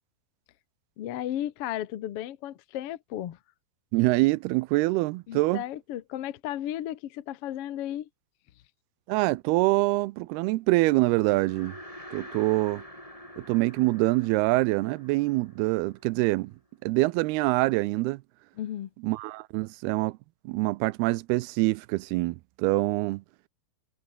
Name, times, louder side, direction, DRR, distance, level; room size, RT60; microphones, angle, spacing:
voice 1, 1.0-3.4 5.3-8.1 18.5-18.9, left 12 dB, 70° left, 1.4 m, -34 dB
voice 2, 3.9-5.6 9.1-11.7 12.1-12.8 13.4-16.5 16.8-18.2 19.0-20.2 20.5-23.2, right 21 dB, 85° right, 2.6 m, -25 dB
sound 1, 11.1-16.5, left 1 dB, 10° left, 7.8 m, -47 dB
omnidirectional pair, 4.5 m